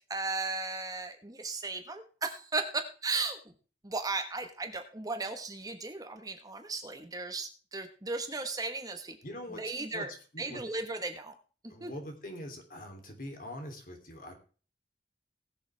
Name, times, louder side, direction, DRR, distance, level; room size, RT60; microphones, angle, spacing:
voice 1, 0.1-3.4 3.8-9.2 9.6-10.1 10.4-11.3 11.8-11.9, right 3 dB, 20° right, 6 dB, 1.3 m, -36 dB
voice 2, 9.2-9.6 9.9-10.6 11.7-14.4, left 1 dB, 50° left, 4 dB, 3.1 m, -43 dB
20.0 x 7.2 x 3.4 m, 0.38 s
head